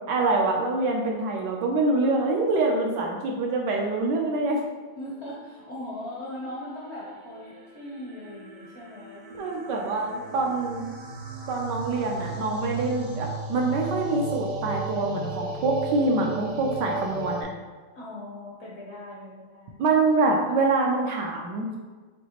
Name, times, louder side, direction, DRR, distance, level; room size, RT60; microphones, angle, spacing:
voice 1, 0.1-4.6 9.4-10.8 11.5-17.5 19.8-21.8, right 3 dB, 75° right, 0 dB, 1.1 m, -25 dB
voice 2, 5.0-10.6 17.9-19.8, left 1 dB, 70° left, -4 dB, 0.6 m, -40 dB
sound 1, 6.0-17.4, right 3 dB, 55° right, 0.7 m, -35 dB
6.1 x 2.8 x 2.9 m, 1.4 s
omnidirectional pair, 2.2 m